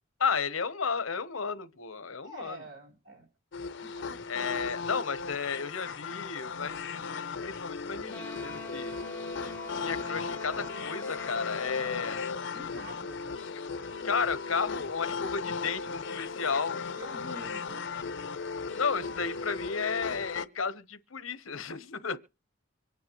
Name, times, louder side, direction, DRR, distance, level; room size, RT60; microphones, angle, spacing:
voice 1, 0.2-2.6 4.3-8.9 9.7-12.2 14.0-16.8 18.7-22.2, left 5 dB, 90° left, 1.0 m, -33 dB
voice 2, 2.2-3.3 3.8-4.2 12.5-13.2 17.0-17.9 18.2-18.4, right 1 dB, 60° right, 4.5 m, -47 dB
sound 1, 3.5-20.5, left 5 dB, 65° left, 0.6 m, -37 dB
Wind instrument woodwind instrument, 8.1-12.3, left 1 dB, 10° left, 0.7 m, -46 dB
25.0 x 9.4 x 3.1 m
head